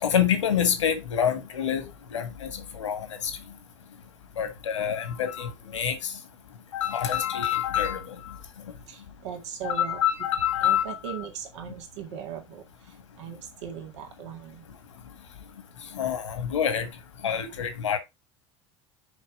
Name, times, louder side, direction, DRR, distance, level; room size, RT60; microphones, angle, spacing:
voice 1, 0.0-3.1 4.4-6.1 6.7-8.4 9.6-11.2 15.9-16.9 17.2-18.0, left 9 dB, 85° left, 1.8 m, -27 dB
voice 2, 8.9-10.0 10.6-14.6, right 8 dB, 75° right, 2.1 m, -39 dB
6.2 x 5.2 x 4.9 m
hypercardioid pair, 80°, 15 cm